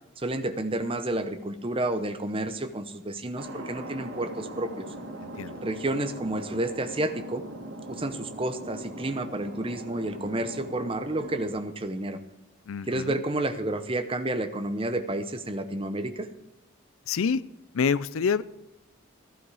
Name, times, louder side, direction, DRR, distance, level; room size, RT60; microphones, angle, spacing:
voice 1, 0.2-4.9 5.6-7.4 7.9-12.2 12.9-16.3, right 1 dB, 25° right, 10 dB, 0.8 m, -30 dB
Thunder, 3.4-11.5, right 1 dB, 80° right, 2.4 m, -40 dB
voice 2, 5.2-5.6 12.7-13.2 17.1-17.4 17.7-18.4, left 6 dB, 90° left, 19 dB, 0.5 m, -27 dB
15.0 x 11.5 x 4.9 m, 0.87 s
head